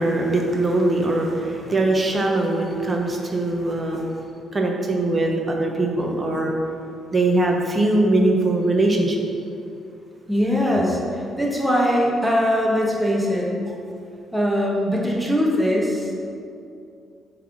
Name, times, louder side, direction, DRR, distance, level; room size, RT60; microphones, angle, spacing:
voice 1, 0.0-4.1 4.5-6.5 7.1-9.2, right 2 dB, 30° right, 1 dB, 1.1 m, -21 dB
voice 2, 10.3-13.5 14.3-16.1, equal, 5° right, -4 dB, 1.4 m, -21 dB
7.3 x 3.5 x 6.1 m, 2.5 s
cardioid pair, 90°, 0 cm